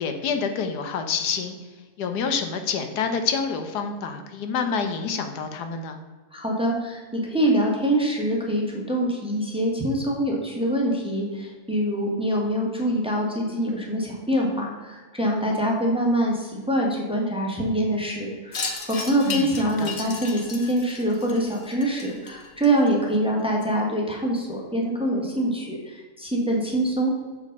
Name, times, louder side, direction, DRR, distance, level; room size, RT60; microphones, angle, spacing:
voice 1, 0.0-1.5 2.0-6.0 19.2-19.9, left 5 dB, 90° left, 7 dB, 1.4 m, -27 dB
voice 2, 6.3-27.1, right 1 dB, 5° right, -1 dB, 1.2 m, -24 dB
Wind chime, 18.5-23.2, left 4 dB, 45° left, 1.2 m, -35 dB
6.3 x 5.3 x 5.3 m, 1.4 s
omnidirectional pair, 1.7 m